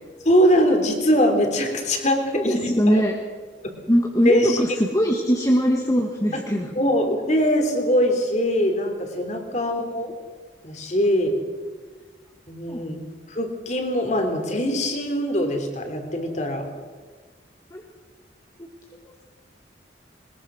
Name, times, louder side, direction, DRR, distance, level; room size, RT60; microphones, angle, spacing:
voice 1, 0.2-3.0 4.2-4.6 6.7-10.1 10.6-11.3 12.5-13.0 13.3-16.7, equal, 40° left, 4 dB, 3.3 m, -22 dB
voice 2, 2.3-3.1 3.9-6.8 12.7-12.8 17.7-17.8 19.1-19.3, equal, 20° left, 0 dB, 1.6 m, -21 dB
22.0 x 21.0 x 6.3 m, 1.4 s
head